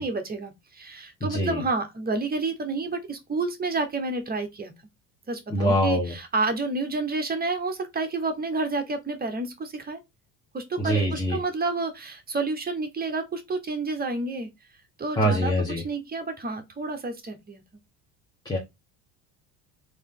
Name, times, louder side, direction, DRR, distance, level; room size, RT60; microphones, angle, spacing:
voice 1, 0.0-4.7 5.3-10.0 10.5-14.5 15.0-15.5 15.8-17.6, right 3 dB, 25° right, 1.0 m, -29 dB
voice 2, 5.5-6.1 10.8-11.4 15.2-15.8 18.4-18.6, equal, 10° left, 1.1 m, -24 dB
3.2 x 2.9 x 3.7 m
supercardioid pair, 100°, 39 cm